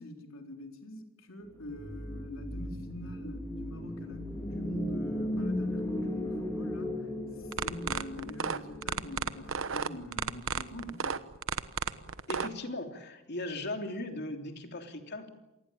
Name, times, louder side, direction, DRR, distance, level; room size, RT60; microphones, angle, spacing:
voice 1, 0.0-7.1 7.4-11.2, left 1 dB, 70° left, 4 dB, 4.1 m, -45 dB
sound 1, 1.6-9.9, left 1 dB, 15° left, 3.6 m, -36 dB
sound 2, 7.4-12.5, right 5 dB, 70° right, 1.2 m, -32 dB
voice 2, 12.3-15.3, left 2 dB, 55° left, 5 dB, 3.3 m, -38 dB
27.5 x 19.5 x 8.7 m, 0.93 s
head